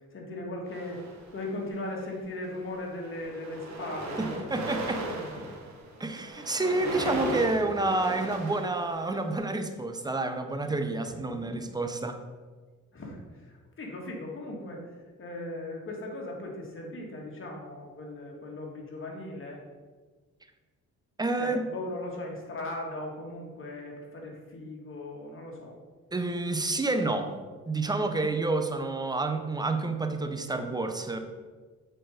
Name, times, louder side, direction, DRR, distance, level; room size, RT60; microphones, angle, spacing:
voice 1, 0.1-5.6 11.1-11.7 12.9-14.8 15.2-19.6 21.4-25.7, left 1 dB, 40° left, -1 dB, 2.1 m, -38 dB
sound 1, 0.7-1.7 2.4-2.7 2.9-9.4, right 2 dB, 65° right, 1.7 m, -37 dB
voice 2, 4.2-5.0 6.0-12.2 21.2-21.7 26.1-27.3 27.7-31.2, right 2 dB, 15° right, 7 dB, 0.8 m, -29 dB
7.5 x 4.6 x 5.1 m, 1.4 s
cardioid pair, 90°, 30 cm